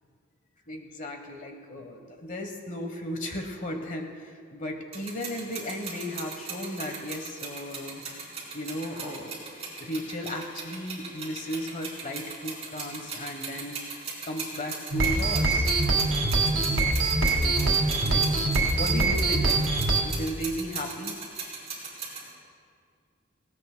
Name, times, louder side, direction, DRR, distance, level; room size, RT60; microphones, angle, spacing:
voice 1, 0.7-8.0 8.5-9.5 9.8-15.7 17.2-18.3 18.8-21.2, equal, 40° left, 4 dB, 1.1 m, -35 dB
sound 1, 4.9-22.3, right 5 dB, 30° right, 4.1 m, -39 dB
sound 2, 14.9-20.0, right 2 dB, 80° right, 2.3 m, -24 dB
19.0 x 17.5 x 2.2 m, 2.1 s
head